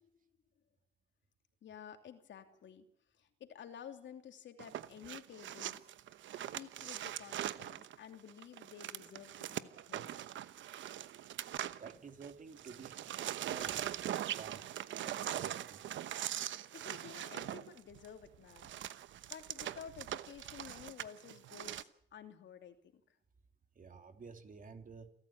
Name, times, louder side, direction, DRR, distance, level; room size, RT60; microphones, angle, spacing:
voice 1, 1.6-2.8 3.1-5.8 6.3-10.2 16.5-18.7 19.3-23.0, left 8 dB, 70° left, 7 dB, 2.9 m, -52 dB
sound 1, 4.6-12.3 12.6-21.8, right 12 dB, 70° right, 1.0 m, -42 dB
voice 2, 11.8-13.7 14.4-14.6 15.0-15.8 23.7-25.1, right 5 dB, 45° right, 7 dB, 3.1 m, -51 dB
28.5 x 14.0 x 8.8 m, 0.68 s
cardioid pair, 90°, 20 cm